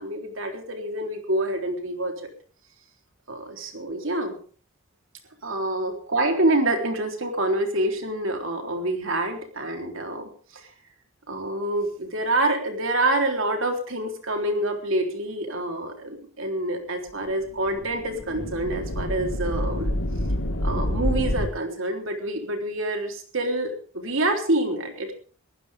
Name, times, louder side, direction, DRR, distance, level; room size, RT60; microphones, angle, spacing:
voice 1, 0.0-2.1 3.3-4.4 5.4-10.7 11.3-20.0 20.6-25.1, right 1 dB, 60° right, 4 dB, 3.9 m, -27 dB
sound 1, 17.5-21.5, left 1 dB, 75° left, 2.3 m, -27 dB
23.0 x 15.0 x 3.7 m, 0.42 s
head